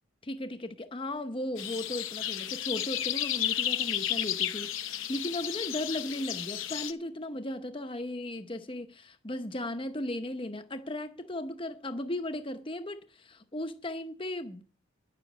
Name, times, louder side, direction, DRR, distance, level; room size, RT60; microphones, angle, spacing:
voice 1, 0.2-14.6, left 1 dB, 25° left, 0.8 m, -36 dB
sound 1, 1.6-6.9, left 11 dB, 70° left, 0.7 m, -32 dB
10.0 x 7.4 x 8.1 m
head